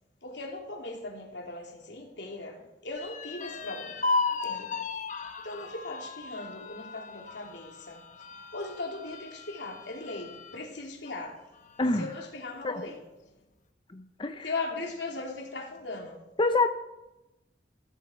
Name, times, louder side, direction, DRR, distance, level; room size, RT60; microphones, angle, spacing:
voice 1, 0.2-4.0 4.4-4.7 5.4-8.0 8.5-11.4 12.0-13.0 14.4-16.2, left 2 dB, 75° left, 3.0 m, -38 dB
sound 1, 3.0-10.6 11.1-11.2 11.5-12.2, left 3 dB, 45° left, 1.2 m, -35 dB
voice 2, 11.8-12.1 12.6-12.8 13.9-14.5 16.4-16.7, left 2 dB, 30° left, 0.6 m, -26 dB
14.5 x 14.0 x 4.5 m
head